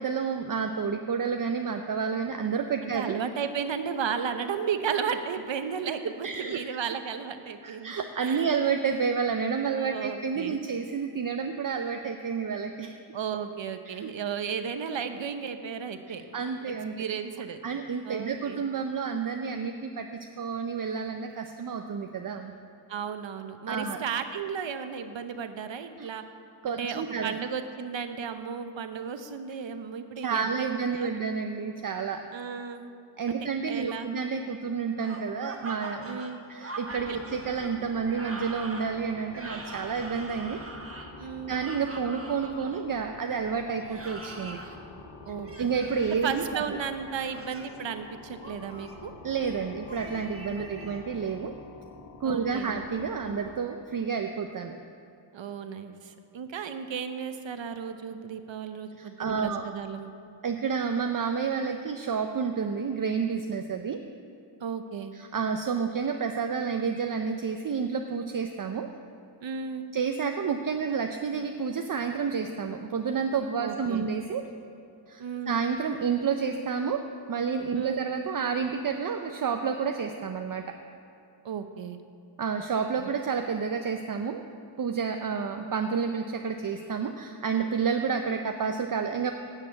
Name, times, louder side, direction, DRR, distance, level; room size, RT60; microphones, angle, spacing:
voice 1, 0.0-3.1 6.2-6.6 7.6-12.9 13.9-14.1 16.3-17.1 17.6-22.5 23.7-24.0 26.0-26.1 26.6-27.4 30.2-32.2 33.2-36.2 36.5-40.6 41.5-44.6 45.6-46.8 49.2-51.5 52.2-54.8 59.0-59.7 60.4-64.0 65.1-68.9 69.9-74.4 75.1-77.0 77.3-80.7 82.4-84.4 84.8-89.3, right 6 dB, 45° right, 5 dB, 0.6 m, -30 dB
voice 2, 2.8-7.9 8.2-8.6 9.7-10.6 13.1-16.2 16.7-17.6 18.0-18.6 22.9-26.2 26.7-31.2 32.3-32.9 33.3-33.4 33.7-34.1 36.1-36.4 37.1-37.2 41.2-41.6 45.3-45.7 46.2-49.1 50.6-50.9 52.2-52.7 55.3-60.1 64.6-65.1 69.4-69.9 73.6-74.1 75.2-75.6 77.7-78.0 81.4-82.0 83.0-83.1, right 7 dB, 70° right, 8 dB, 0.9 m, -34 dB
sound 1, 35.0-42.8 43.8-44.8 45.4-46.2 47.0-47.8 48.4-49.0 49.9-51.0, right 2 dB, 30° right, 1.2 m, -42 dB
sound 2, 36.8-53.6, left 3 dB, 80° left, 1.2 m, -47 dB
9.7 x 6.7 x 8.5 m, 2.5 s
wide cardioid pair, 80°, 47 cm